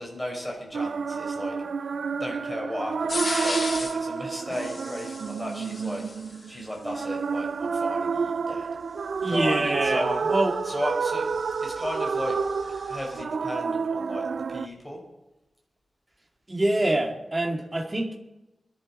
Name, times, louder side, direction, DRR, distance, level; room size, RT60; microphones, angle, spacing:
voice 1, 0.0-1.5 2.2-6.0 6.5-8.7 9.3-10.2 10.6-11.3 11.6-12.4 12.9-15.0, equal, 10° left, -1 dB, 5.2 m, -34 dB
sound 1, 0.7-14.7, right 5 dB, 75° right, 0.5 m, -29 dB
sound 2, 3.1-4.0 4.5-6.6 9.2-13.2, left 3 dB, 40° left, 1.3 m, -37 dB
voice 2, 9.2-10.6 16.5-18.2, right 1 dB, 25° right, 1 dB, 2.3 m, -25 dB
21.0 x 11.0 x 4.3 m, 0.98 s
wide cardioid pair, 140°, 0 cm